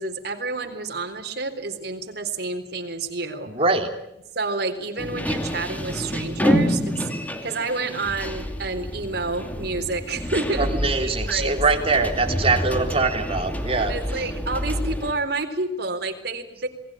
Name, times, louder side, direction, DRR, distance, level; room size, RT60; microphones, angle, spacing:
voice 1, 0.0-3.5 4.4-10.7 11.0-11.6 13.7-16.7, right 3 dB, 60° right, 5 dB, 3.9 m, -29 dB
voice 2, 3.5-3.9 10.6-13.9, right 3 dB, 35° right, 4 dB, 3.5 m, -23 dB
sound 1, 5.0-15.1, equal, 10° left, 2.7 m, -28 dB
27.5 x 20.5 x 8.9 m, 0.86 s
head